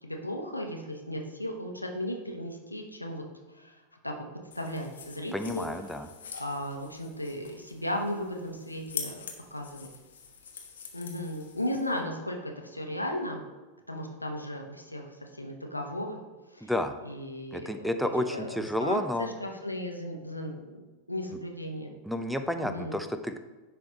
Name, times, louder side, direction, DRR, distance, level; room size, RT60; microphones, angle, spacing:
voice 1, 0.0-3.2 3.5-4.1 4.5-6.0 6.3-9.2 9.5-9.9 10.9-13.4 13.9-16.2 16.5-16.7 17.0-17.9 18.3-21.9 22.6-23.0, left 1 dB, 85° left, 2 dB, 1.0 m, -36 dB
sound 1, 4.5-12.0, left 7 dB, 65° left, 1.1 m, -45 dB
voice 2, 5.3-6.1 16.6-17.0 17.5-19.3 22.1-23.4, left 1 dB, ahead, 8 dB, 0.4 m, -31 dB
10.5 x 3.5 x 3.8 m, 1.2 s
figure-of-eight pair, 90°, 0 cm